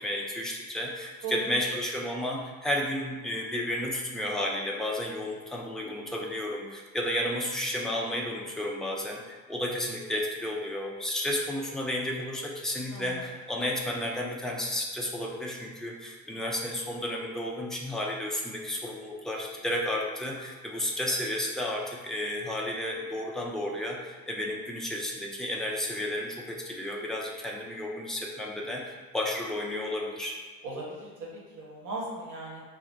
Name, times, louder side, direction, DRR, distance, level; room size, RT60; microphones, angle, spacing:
voice 1, 0.0-30.4, left 1 dB, ahead, -2 dB, 0.3 m, -32 dB
voice 2, 12.9-13.3 30.6-32.6, right 2 dB, 40° right, -4 dB, 1.1 m, -37 dB
2.8 x 2.2 x 3.5 m, 1.5 s
figure-of-eight pair, 45°, 46 cm